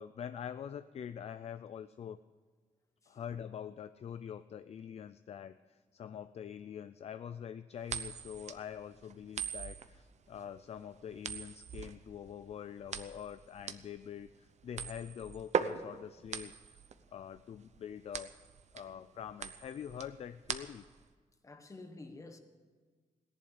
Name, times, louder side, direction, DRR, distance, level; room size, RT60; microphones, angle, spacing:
voice 1, 0.0-2.2 3.1-16.8 17.1-18.3 18.7-20.8, left 8 dB, 50° left, 0.4 m, -45 dB
sound 1, 7.8-21.0, right 7 dB, 55° right, 0.8 m, -41 dB
voice 2, 21.4-22.4, left 2 dB, 25° left, 1.3 m, -50 dB
17.5 x 11.0 x 7.0 m
wide cardioid pair, 175°, 14 cm